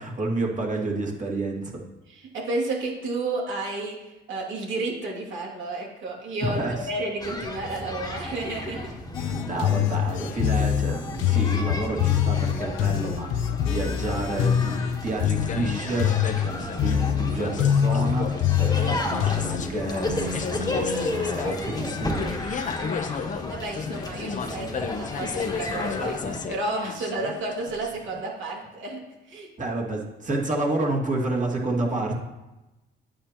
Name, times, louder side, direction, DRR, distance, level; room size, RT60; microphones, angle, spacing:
voice 1, 0.0-1.8 6.4-6.9 9.1-22.3 29.6-32.2, right 2 dB, 40° right, -1 dB, 2.2 m, -30 dB
voice 2, 2.1-6.6 6.9-8.9 23.5-29.5, right 2 dB, 75° right, -3 dB, 2.5 m, -31 dB
sound 1, 7.2-26.5, left 1 dB, 20° left, 1.3 m, -34 dB
sound 2, 9.1-19.6, left 10 dB, 90° left, 0.6 m, -24 dB
sound 3, 15.2-28.2, left 6 dB, 40° left, 0.7 m, -33 dB
9.8 x 8.7 x 3.0 m, 1.0 s
cardioid pair, 90°, 20 cm